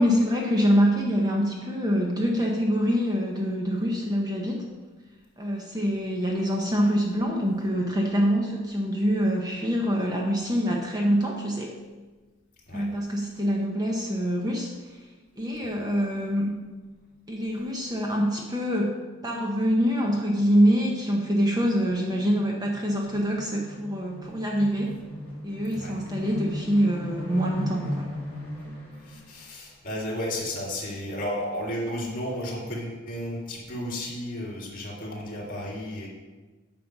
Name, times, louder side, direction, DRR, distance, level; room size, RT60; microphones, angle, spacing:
voice 1, 0.0-4.6 5.4-11.7 12.7-14.7 15.4-16.5 17.3-25.0 25.4-28.1, equal, 20° right, -1 dB, 0.8 m, -25 dB
sound 1, 19.2-19.4 19.6-29.3, equal, 10° left, 2.7 m, -38 dB
voice 2, 29.0-36.1, left 1 dB, 40° left, -4 dB, 2.2 m, -33 dB
9.2 x 5.1 x 6.0 m, 1.3 s
head